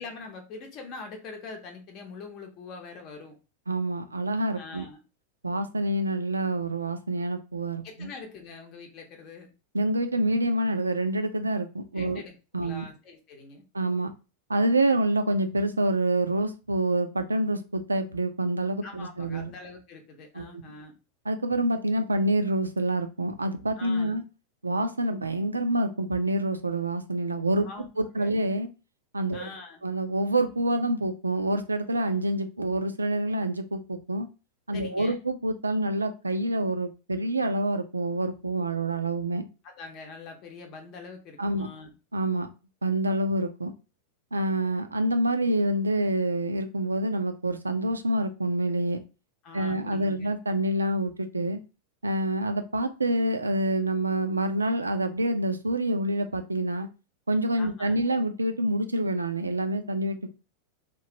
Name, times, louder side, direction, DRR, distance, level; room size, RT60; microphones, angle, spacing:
voice 1, 0.0-3.4 4.5-5.0 7.8-9.5 11.9-13.6 18.8-20.9 23.8-24.2 27.6-27.9 28.2-28.3 29.3-29.8 34.7-35.2 39.6-41.9 49.4-50.3 57.6-58.0, left 4 dB, 35° left, 3 dB, 0.7 m, -43 dB
voice 2, 3.7-4.8 5.4-8.1 9.7-12.2 12.5-12.9 13.7-14.1 14.5-19.5 20.4-20.5 21.3-24.2 24.6-27.7 28.0-28.7 29.1-29.5 29.8-34.3 34.7-39.5 41.4-41.7 42.1-42.5 42.8-43.7 44.3-49.0 49.5-51.6 52.0-56.9 57.3-60.3, right 1 dB, 80° right, 8 dB, 0.4 m, -27 dB
3.0 x 2.4 x 2.8 m, 0.30 s
figure-of-eight pair, 90°, 0 cm